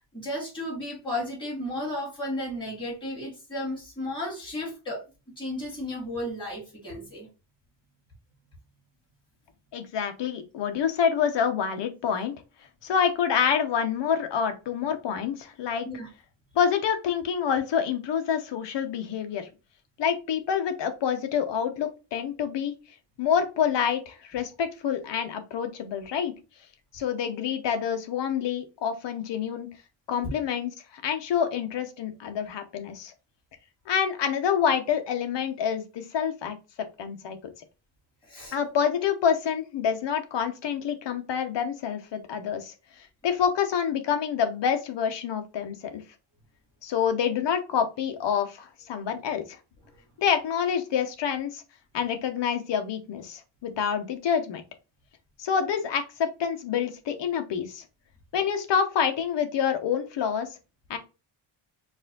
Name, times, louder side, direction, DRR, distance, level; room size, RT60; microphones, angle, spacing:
voice 1, 0.1-5.0 5.4-7.3 15.8-16.1 38.3-38.5, left 1 dB, 10° left, -4 dB, 2.6 m, -34 dB
voice 2, 9.7-12.3 12.8-15.9 16.5-19.5 20.0-22.7 23.2-26.3 26.9-29.7 30.1-33.1 33.9-36.6 37.0-37.4 38.5-46.0 46.8-49.6 50.2-51.6 51.9-54.6 55.4-57.8 58.3-60.6 60.9-61.0, left 7 dB, 55° left, 7 dB, 0.9 m, -27 dB
4.7 x 2.6 x 3.8 m, 0.30 s
wide cardioid pair, 180°, 50 cm